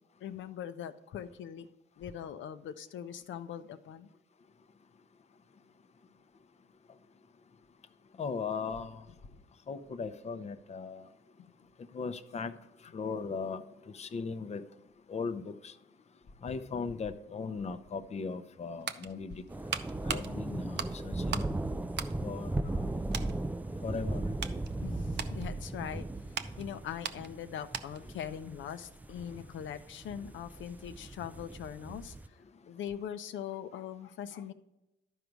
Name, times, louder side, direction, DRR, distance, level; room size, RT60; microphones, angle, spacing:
voice 1, 0.2-1.7 2.0-4.1 24.8-26.1 26.6-32.2 32.7-34.5, left 9 dB, 75° left, 0.7 m, -41 dB
voice 2, 8.2-9.0 9.7-11.1 11.9-12.5 12.9-13.6 13.9-14.6 15.1-15.7 16.4-19.4 20.0-21.4 22.2-22.9 23.8-24.2, left 5 dB, 35° left, 0.6 m, -38 dB
sound 1, 18.4-21.6 21.9-22.8 23.1-23.4 23.9-28.1 28.4-28.6, right 8 dB, 60° right, 0.6 m, -40 dB
sound 2, 19.5-32.3, right 2 dB, 10° right, 0.3 m, -37 dB
12.0 x 4.7 x 5.1 m
cardioid pair, 90°, 20 cm